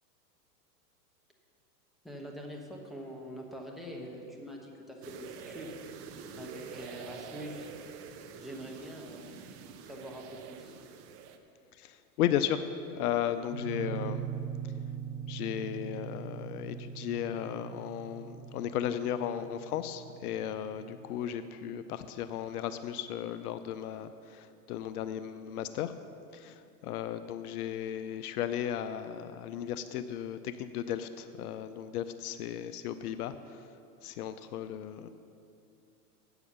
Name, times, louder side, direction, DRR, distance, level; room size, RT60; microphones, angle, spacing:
voice 1, 2.0-5.7 6.4-7.7 8.4-9.4 9.8-10.7, equal, ahead, -1 dB, 1.1 m, -44 dB
sound 1, 5.0-11.4, right 6 dB, 30° right, 0.6 m, -47 dB
voice 2, 11.7-14.3 15.3-25.9 26.3-33.7 34.0-35.1, left 10 dB, 65° left, 11 dB, 0.6 m, -35 dB
sound 2, 13.5-22.2, right 8 dB, 70° right, 1.3 m, -41 dB
8.7 x 7.0 x 6.8 m, 2.6 s
hypercardioid pair, 125°, 48 cm